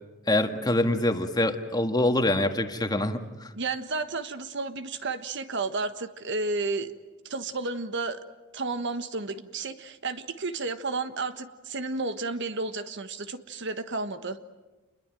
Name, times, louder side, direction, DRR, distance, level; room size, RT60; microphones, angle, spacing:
voice 1, 0.3-3.2, left 1 dB, 20° left, 6 dB, 1.8 m, -25 dB
voice 2, 3.5-6.9 7.2-8.2 8.5-14.4, right 3 dB, 60° right, 10 dB, 1.4 m, -32 dB
28.5 x 22.0 x 9.2 m, 1.1 s
head